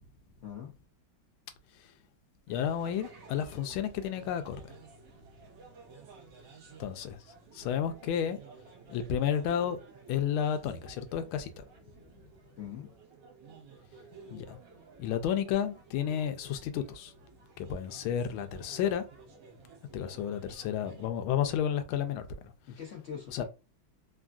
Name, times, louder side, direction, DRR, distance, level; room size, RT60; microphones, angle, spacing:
voice 1, 0.4-0.7 12.6-12.9 22.7-23.4, left 8 dB, 70° left, 0.7 m, -42 dB
voice 2, 2.5-4.8 6.8-7.2 7.5-8.4 8.9-9.8 10.1-11.9 14.3-14.6 15.0-17.1 17.6-19.1 19.9-22.5 23.3-23.4, left 9 dB, 90° left, 1.4 m, -32 dB
sound 1, 2.5-21.1, right 5 dB, 65° right, 1.3 m, -54 dB
3.5 x 2.5 x 2.3 m
omnidirectional pair, 2.2 m